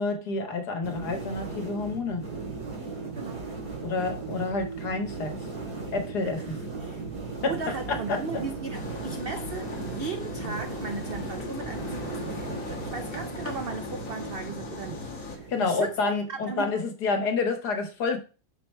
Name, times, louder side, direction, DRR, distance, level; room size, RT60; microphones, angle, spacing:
voice 1, 0.0-2.2 3.8-5.3 5.9-6.6 7.4-7.5 7.9-8.2 15.5-18.2, left 3 dB, 75° left, 1.9 m, -28 dB
sound 1, 0.8-15.9, right 4 dB, 70° right, 3.7 m, -37 dB
voice 2, 3.1-3.5 6.4-6.5 6.8-7.0 7.4-16.7, right 4 dB, 85° right, 0.5 m, -37 dB
sound 2, 8.7-15.4, left 5 dB, 55° left, 1.6 m, -39 dB
6.5 x 4.5 x 4.3 m
omnidirectional pair, 1.7 m